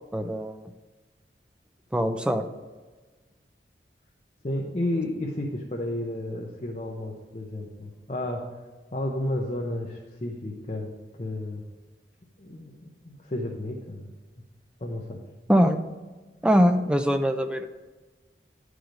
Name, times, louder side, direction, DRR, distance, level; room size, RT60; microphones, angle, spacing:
voice 1, 0.1-0.6 1.9-2.5 15.5-15.8 16.4-17.7, equal, 5° right, 7 dB, 0.4 m, -22 dB
voice 2, 4.4-8.5 8.9-10.9 11.2-11.6 12.4-14.1 14.4-14.5 14.8-15.2, left 1 dB, 35° left, -1 dB, 0.8 m, -32 dB
10.5 x 4.9 x 5.2 m, 1.2 s
head